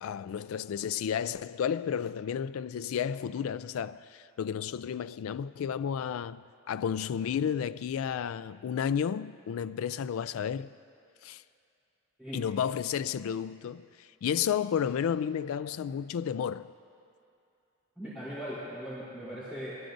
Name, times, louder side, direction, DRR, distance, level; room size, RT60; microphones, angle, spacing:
voice 1, 0.0-10.7 11.2-11.4 12.3-16.7, left 8 dB, 80° left, 0.3 m, -32 dB
voice 2, 17.9-19.8, equal, 5° right, 3.4 m, -39 dB
21.0 x 13.5 x 2.6 m
head